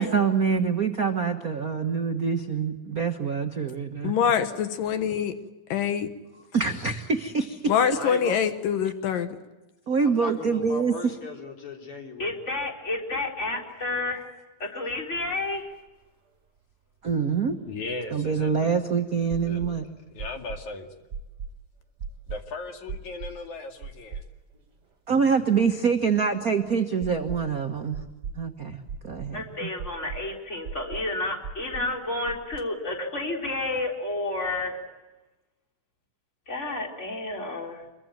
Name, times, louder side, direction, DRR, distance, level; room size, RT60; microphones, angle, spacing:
voice 1, 0.0-4.1 6.5-7.7 9.9-10.9 17.0-17.6 18.1-19.8 25.1-28.0 28.4-29.7, right 5 dB, 70° right, 5 dB, 0.8 m, -25 dB
voice 2, 4.0-5.4 5.7-6.1 7.7-9.4, left 8 dB, 80° left, 9 dB, 2.9 m, -24 dB
voice 3, 7.9-8.4 10.0-12.4, left 2 dB, 40° left, 2 dB, 4.2 m, -37 dB
voice 4, 12.2-14.3 14.6-15.6 29.3-34.8 36.5-37.6, left 2 dB, 20° left, 2 dB, 4.2 m, -30 dB
sound 1, 15.5-15.6 15.8-15.9 17.5-18.7 19.3-19.8 20.2-20.7 21.1-21.6 22.0-22.4 22.9-23.4 23.8-24.6 24.9-25.0 27.0-27.6 27.9-28.4 28.9-29.4 29.8-30.3 30.6-31.1 31.4-31.9 32.3-32.6, right 5 dB, 30° right, 2.7 m, -38 dB
voice 5, 17.7-18.8 19.1-19.8 20.1-20.9 22.3-24.2, left 3 dB, 60° left, 4 dB, 3.6 m, -38 dB
27.0 x 23.0 x 9.1 m, 1.1 s
omnidirectional pair, 3.9 m